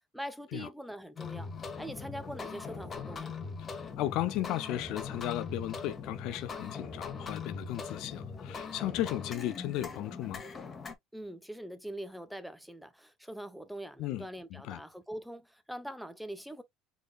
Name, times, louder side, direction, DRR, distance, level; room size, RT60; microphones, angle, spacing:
voice 1, 0.1-3.3 11.1-16.6, right 1 dB, ahead, 1.0 m, -43 dB
sound 1, 1.2-10.9, left 5 dB, 35° left, 1.3 m, -41 dB
voice 2, 3.6-10.4 14.0-14.2 14.6-14.8, left 14 dB, 65° left, 0.5 m, -35 dB
4.8 x 3.9 x 2.2 m
hypercardioid pair, 70°, 0 cm